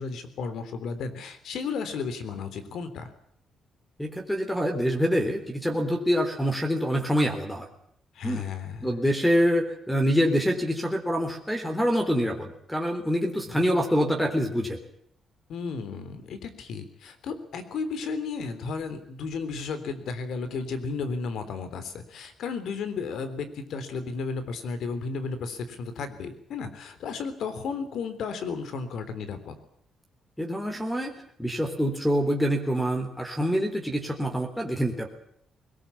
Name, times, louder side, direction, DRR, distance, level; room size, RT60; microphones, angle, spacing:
voice 1, 0.0-3.1 8.1-9.0 13.5-13.6 15.5-29.6, left 5 dB, 75° left, 11 dB, 3.6 m, -34 dB
voice 2, 4.0-7.7 8.2-8.5 8.8-14.8 30.4-35.1, equal, 5° left, 4 dB, 3.7 m, -26 dB
21.5 x 20.0 x 8.6 m, 0.70 s
cardioid pair, 120°, 0 cm